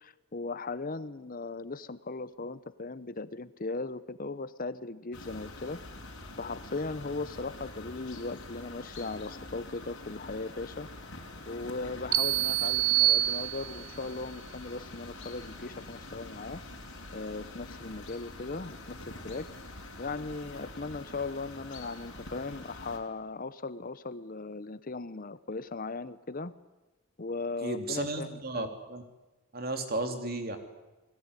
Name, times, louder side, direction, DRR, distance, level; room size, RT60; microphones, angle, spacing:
voice 1, 0.0-5.8 6.4-10.9 11.5-16.6 17.1-19.0 19.2-19.5 20.0-26.5 27.2-28.7, left 3 dB, 40° left, 15 dB, 0.8 m, -38 dB
sound 1, 5.1-23.0, left 2 dB, 55° left, 5.7 m, -46 dB
sound 2, 12.1-14.0, right 15 dB, 80° right, 1.3 m, -26 dB
voice 2, 27.6-29.0 29.5-30.6, right 2 dB, 45° right, 6 dB, 3.2 m, -34 dB
28.5 x 20.5 x 9.8 m, 1.1 s
head